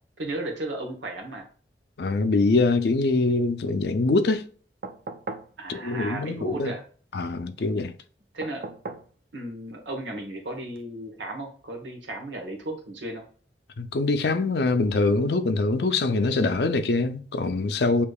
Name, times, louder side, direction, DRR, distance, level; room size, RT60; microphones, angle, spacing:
voice 1, 0.2-1.4 5.6-6.8 8.3-8.7 9.3-13.2 16.4-16.6, right 1 dB, 85° right, 1.1 m, -34 dB
voice 2, 2.0-4.4 5.7-6.7 7.1-7.9 13.8-18.1, left 3 dB, 65° left, 0.5 m, -24 dB
sound 1, 4.8-5.5 8.4-9.1 10.7-10.8, right 3 dB, 50° right, 0.5 m, -37 dB
6.5 x 3.0 x 2.3 m
head